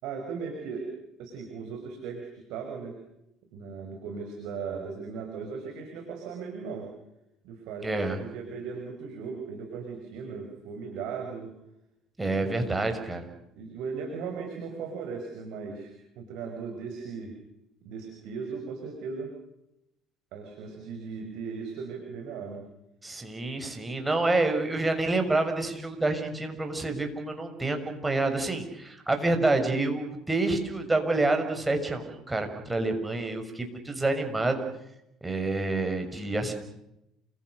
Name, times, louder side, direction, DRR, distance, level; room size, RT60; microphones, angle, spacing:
voice 1, 0.0-0.9 1.2-3.0 3.5-6.9 7.4-11.5 12.3-12.7 13.6-17.3 17.8-19.3 20.3-22.6, right 5 dB, 60° right, 3 dB, 5.4 m, -37 dB
voice 2, 7.8-8.2 12.2-13.3 23.0-34.6 35.2-36.5, right 2 dB, 15° right, 5 dB, 6.5 m, -28 dB
29.5 x 26.5 x 6.7 m, 0.84 s
figure-of-eight pair, 55°, 0 cm